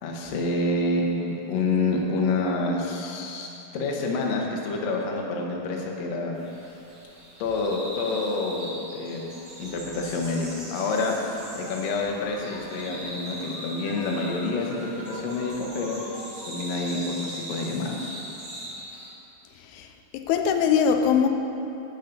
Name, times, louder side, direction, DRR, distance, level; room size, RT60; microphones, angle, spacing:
voice 1, 0.0-6.4 7.4-9.2 9.6-16.0 16.4-18.1, left 3 dB, 65° left, -1 dB, 1.8 m, -28 dB
sound 1, 6.3-19.1, right 1 dB, 40° right, 1.7 m, -40 dB
voice 2, 19.7-21.3, left 7 dB, 85° left, 5 dB, 2.6 m, -22 dB
10.0 x 9.2 x 5.4 m, 2.9 s
omnidirectional pair, 4.5 m